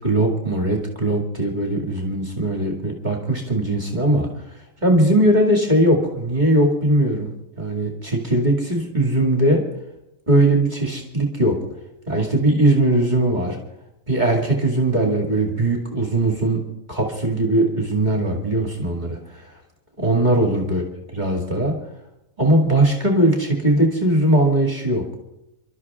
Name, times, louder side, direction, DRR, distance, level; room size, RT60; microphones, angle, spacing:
voice 1, 0.0-4.3 4.8-7.3 7.6-9.6 10.3-11.6 12.1-13.6 14.1-16.6 16.9-19.4 20.0-20.8 21.1-21.7 22.4-25.0, right 1 dB, 35° right, 1 dB, 2.4 m, -19 dB
28.0 x 12.5 x 3.6 m, 0.87 s
omnidirectional pair, 1.4 m